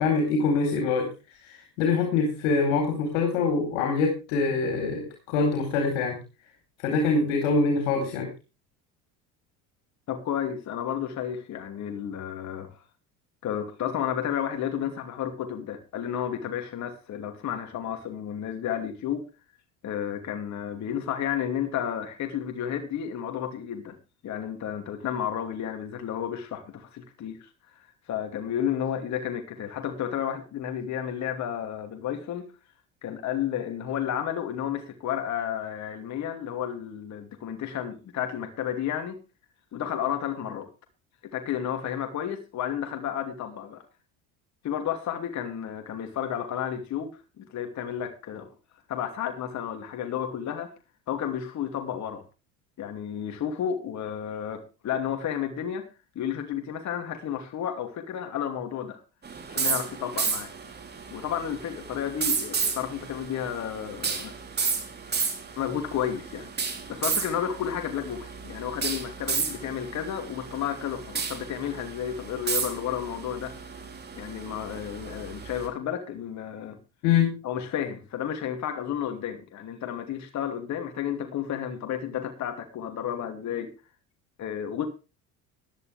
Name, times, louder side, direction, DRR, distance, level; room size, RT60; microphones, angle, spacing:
voice 1, 0.0-6.2 6.8-8.3 77.0-77.3, left 4 dB, 90° left, 4.1 m, -24 dB
voice 2, 10.1-12.8 13.4-19.3 19.8-24.0 24.2-27.8 28.1-32.5 33.0-39.2 39.7-40.7 41.2-43.8 44.6-48.5 48.9-50.7 51.1-52.2 52.8-55.9 56.1-59.0 59.5-60.5 61.1-64.4 65.6-66.5 66.9-73.5 74.2-76.8 77.4-83.7 84.4-84.9, left 9 dB, 50° left, 2.7 m, -32 dB
sound 1, 59.2-75.7, right 5 dB, 25° right, 3.4 m, -33 dB
16.0 x 11.5 x 3.4 m
cardioid pair, 115°, 36 cm